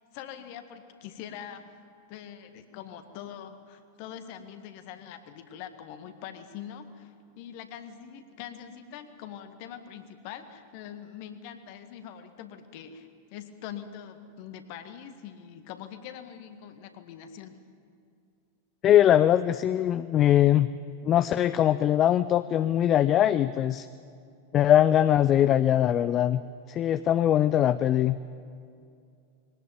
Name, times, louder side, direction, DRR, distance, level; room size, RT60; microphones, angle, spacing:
voice 1, 0.1-1.7 2.1-17.6, left 9 dB, 45° left, 9 dB, 1.8 m, -43 dB
voice 2, 18.8-20.7 21.0-23.9 24.5-26.4 26.7-28.3, left 11 dB, 30° left, 14 dB, 0.5 m, -22 dB
22.0 x 18.0 x 9.1 m, 2.4 s
figure-of-eight pair, 90°, 0 cm